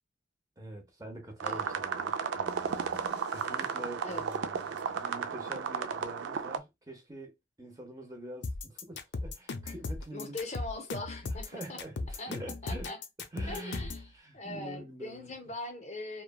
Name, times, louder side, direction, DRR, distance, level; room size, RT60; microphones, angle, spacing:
voice 1, 0.6-10.4 11.2-12.9 13.3-15.3, right 1 dB, 20° right, 0.7 m, -45 dB
voice 2, 1.4-1.8 4.0-4.2 10.1-11.8 12.2-12.3 12.6-13.0 13.5-14.0 14.3-16.2, left 2 dB, 35° left, 0.7 m, -41 dB
sound 1, 1.4-6.6, right 6 dB, 85° right, 0.4 m, -34 dB
sound 2, 2.5-5.1, right 1 dB, 60° right, 0.7 m, -53 dB
sound 3, 8.4-14.1, left 3 dB, 70° left, 0.5 m, -37 dB
3.1 x 2.2 x 2.2 m
head